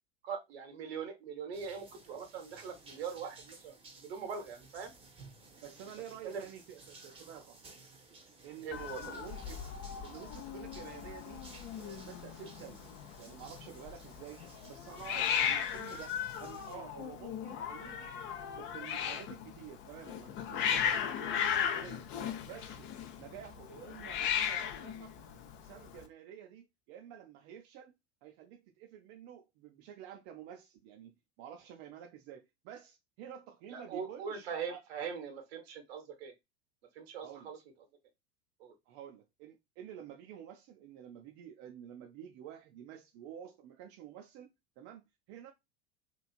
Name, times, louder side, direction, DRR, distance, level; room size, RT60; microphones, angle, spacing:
voice 1, 0.2-3.7 4.0-4.9 6.2-6.4 8.6-9.0 33.7-36.3 37.0-37.6 38.6-38.7, right 6 dB, 70° right, 0.9 m, -41 dB
sound 1, 1.5-16.8, right 3 dB, 15° right, 0.7 m, -56 dB
voice 2, 5.6-7.8 8.4-9.6 10.0-11.4 11.8-12.9 13.2-18.2 18.5-22.1 22.5-22.9 23.2-25.1 25.6-35.1 37.2-37.5 38.9-44.5 44.8-45.5, right 9 dB, 45° right, 0.5 m, -50 dB
Hiss, 8.7-26.0, left 8 dB, 35° left, 0.5 m, -37 dB
3.0 x 2.4 x 2.4 m
figure-of-eight pair, 80°, 32 cm